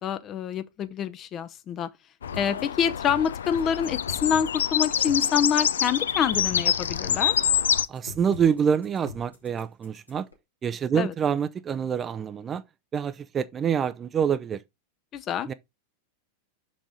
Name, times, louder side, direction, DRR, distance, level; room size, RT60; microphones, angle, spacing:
voice 1, 0.0-1.9 2.3-7.3 10.9-11.1 15.1-15.5, left 8 dB, 30° left, 0.7 m, -27 dB
sound 1, 2.2-7.9, left 9 dB, 65° left, 0.4 m, -26 dB
sound 2, 2.3-10.3, left 3 dB, 85° left, 2.4 m, -43 dB
voice 2, 7.9-10.3 10.6-12.6 12.9-14.6 15.5-15.6, right 7 dB, 25° right, 0.5 m, -26 dB
6.2 x 6.2 x 3.6 m
figure-of-eight pair, 90°, 0 cm